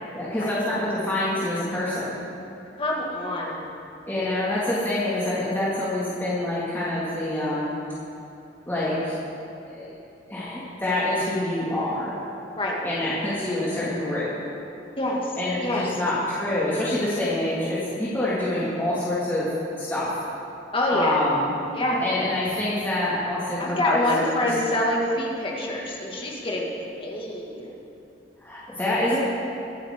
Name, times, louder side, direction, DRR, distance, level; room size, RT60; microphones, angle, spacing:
voice 1, 0.1-2.2 3.4-3.5 4.1-7.8 8.7-9.2 9.6-9.9 10.3-12.2 12.8-14.3 15.4-19.5 19.8-20.1 20.9-21.5 22.0-24.3 28.4-29.2, left 1 dB, 10° left, -9 dB, 2.1 m, -26 dB
voice 2, 2.8-3.7 12.5-12.8 15.0-15.9 20.7-21.2 21.7-22.0 23.6-26.7 27.0-27.7, left 1 dB, 30° left, -3 dB, 2.0 m, -26 dB
23.0 x 8.8 x 3.7 m, 2.8 s
head